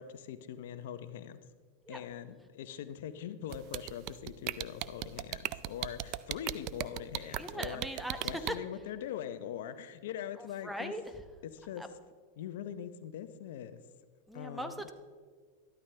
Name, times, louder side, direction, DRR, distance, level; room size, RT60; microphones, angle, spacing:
voice 1, 0.0-1.4 1.9-10.9 11.4-11.9 12.4-13.8 14.3-14.8, left 9 dB, 75° left, 11 dB, 0.7 m, -42 dB
sound 1, 3.5-8.5, right 17 dB, 45° right, 0.4 m, -35 dB
voice 2, 7.3-8.6 10.4-11.0 11.8-11.9 14.3-14.9, equal, ahead, 8 dB, 0.8 m, -40 dB
12.5 x 12.5 x 3.3 m, 1.5 s
supercardioid pair, 130°, 0 cm